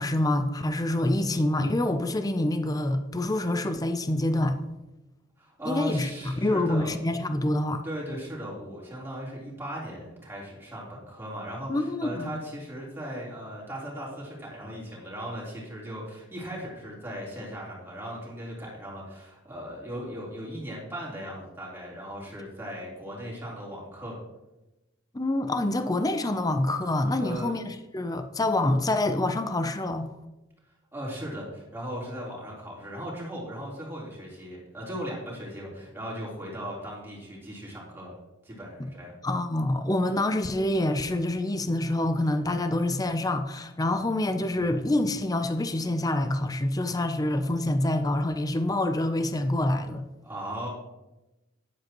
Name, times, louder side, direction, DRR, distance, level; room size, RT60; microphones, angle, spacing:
voice 1, 0.0-4.6 5.7-7.8 11.7-12.4 25.1-30.1 39.2-50.1, left 1 dB, 20° left, 0.5 m, -26 dB
voice 2, 5.4-6.9 7.8-24.2 27.1-27.6 30.9-38.2 38.4-39.1 50.2-50.7, equal, 10° right, 3.6 m, -37 dB
13.0 x 10.5 x 3.0 m
head